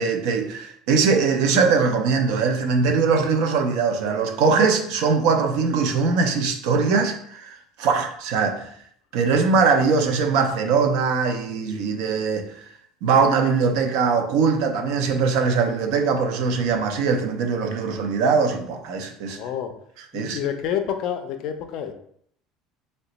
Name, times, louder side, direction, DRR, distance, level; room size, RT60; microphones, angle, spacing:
voice 1, 0.0-8.7 9.1-12.6 13.0-19.4 20.1-20.4, right 5 dB, 65° right, 0.5 m, -21 dB
voice 2, 19.3-19.7 20.1-21.9, left 9 dB, 50° left, 0.4 m, -28 dB
2.9 x 2.1 x 3.9 m
cardioid pair, 160°, 0 cm